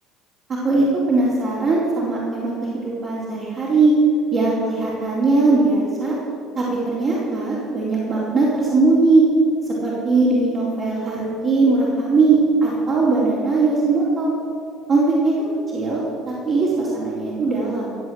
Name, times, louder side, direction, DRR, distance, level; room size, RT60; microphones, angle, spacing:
voice 1, 0.5-3.9 4.3-6.2 6.6-9.2 9.8-14.3 14.9-15.3 15.7-18.0, right 3 dB, 50° right, -7 dB, 4.3 m, -19 dB
18.0 x 8.1 x 7.9 m, 2.5 s
hypercardioid pair, 70°, 0 cm